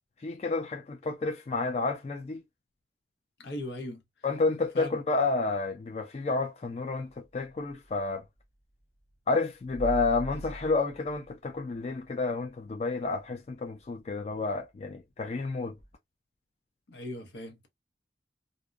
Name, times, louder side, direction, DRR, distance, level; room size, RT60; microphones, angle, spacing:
voice 1, 0.2-2.4 4.2-8.2 9.3-15.7, left 3 dB, 35° left, 0.3 m, -30 dB
voice 2, 3.4-4.0 4.7-4.9 16.9-17.7, left 1 dB, 80° left, 0.8 m, -38 dB
sound 1, 7.1-8.1 9.6-12.2 12.7-12.8 15.8-15.9, equal, 5° left, 1.0 m, -41 dB
2.6 x 2.0 x 2.3 m
head